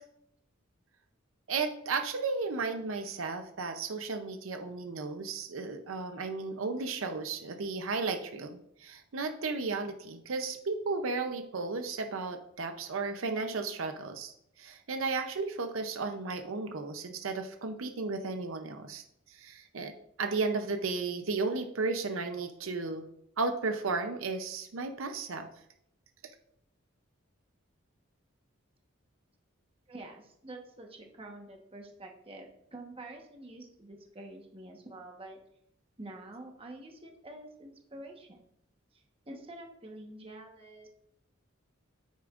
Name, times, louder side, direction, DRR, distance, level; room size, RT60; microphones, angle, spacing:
voice 1, 1.5-19.9 20.2-23.0 23.4-25.5, right 4 dB, 75° right, 6 dB, 0.7 m, -34 dB
voice 2, 29.9-35.4 36.0-38.4 38.9-40.9, right 2 dB, 25° right, 2 dB, 1.2 m, -47 dB
9.4 x 8.2 x 2.5 m, 0.75 s
head